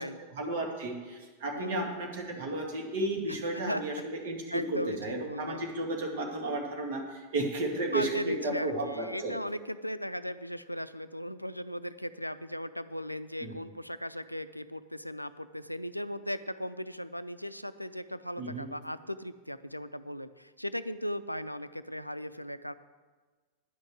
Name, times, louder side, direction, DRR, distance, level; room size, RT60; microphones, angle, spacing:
voice 1, 0.3-9.3 13.4-13.5 18.4-18.7, right 2 dB, 55° right, 0 dB, 2.3 m, -33 dB
voice 2, 1.6-1.9 3.3-3.8 4.5-5.6 7.9-22.7, equal, 90° left, 13 dB, 0.4 m, -37 dB
10.5 x 6.4 x 7.8 m, 1.4 s
figure-of-eight pair, 90°, 0 cm